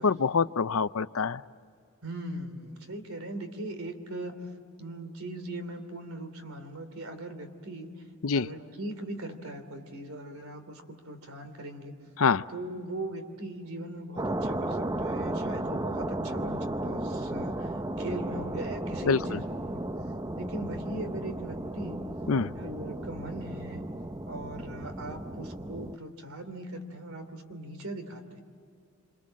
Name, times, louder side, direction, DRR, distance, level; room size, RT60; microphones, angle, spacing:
voice 1, 0.0-1.4 8.2-8.5 12.2-12.4 19.0-19.4 22.3-22.5, left 5 dB, 75° left, 15 dB, 0.6 m, -25 dB
voice 2, 2.0-4.4 4.8-7.9 8.3-11.9 12.5-17.7 18.0-19.9 20.4-22.1 22.5-23.9 24.3-28.4, right 1 dB, 80° right, 8 dB, 2.9 m, -40 dB
sound 1, 14.2-26.0, right 1 dB, 15° right, 0.6 m, -34 dB
27.0 x 27.0 x 7.5 m, 2.3 s
head